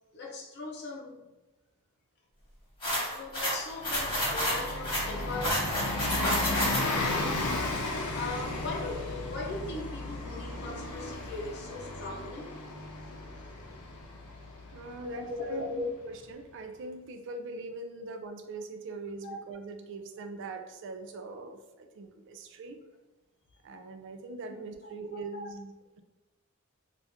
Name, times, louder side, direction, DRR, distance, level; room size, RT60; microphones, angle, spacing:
voice 1, 0.1-1.3 3.1-12.5 15.0-15.8 19.2-19.4 22.3-22.4 24.8-25.4, left 3 dB, 50° left, -1 dB, 0.6 m, -40 dB
sound 1, 2.8-7.1, equal, 25° left, 1.4 m, -30 dB
Bus, 3.7-16.0, left 2 dB, 90° left, 0.6 m, -35 dB
voice 2, 14.7-22.8 23.6-26.0, right 2 dB, 55° right, 6 dB, 0.4 m, -41 dB
2.8 x 2.4 x 3.4 m, 1.1 s
head